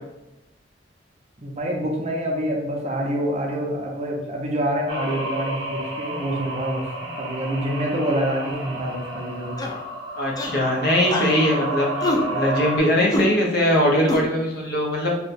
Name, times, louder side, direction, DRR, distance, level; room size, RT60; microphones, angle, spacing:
voice 1, 1.4-9.6, right 1 dB, 35° right, 0 dB, 0.5 m, -26 dB
sound 1, 4.9-12.8, right 1 dB, 90° right, 0.5 m, -31 dB
sound 2, 9.6-9.8 10.4-10.6 11.1-11.3 12.0-12.2 13.1-13.3 14.1-14.2, left 2 dB, 20° left, 0.3 m, -25 dB
voice 2, 10.2-11.9 12.3-15.1, left 1 dB, 60° left, -1 dB, 0.7 m, -21 dB
2.8 x 2.2 x 4.0 m, 0.98 s
head